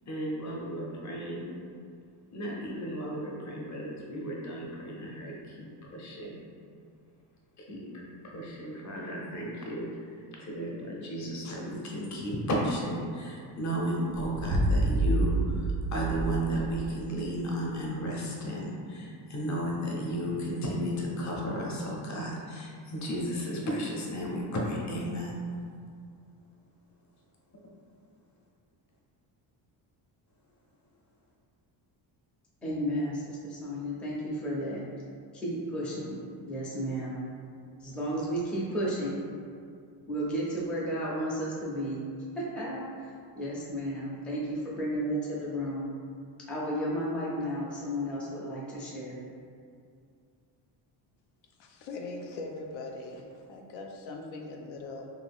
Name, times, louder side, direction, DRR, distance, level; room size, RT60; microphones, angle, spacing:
voice 1, 0.1-1.5 2.3-6.4 7.6-25.4, equal, 40° left, -2 dB, 0.7 m, -34 dB
sound 1, 14.1-16.9, right 1 dB, 85° right, 0.5 m, -28 dB
voice 2, 32.6-34.8 35.3-37.2 37.8-39.2 40.1-42.0 42.4-42.9 43.4-45.9 46.5-49.2, equal, 5° left, -7 dB, 0.4 m, -33 dB
voice 3, 51.6-55.1, left 2 dB, 85° left, 1 dB, 0.5 m, -41 dB
2.6 x 2.4 x 3.4 m, 2.3 s
cardioid pair, 130°, 45 cm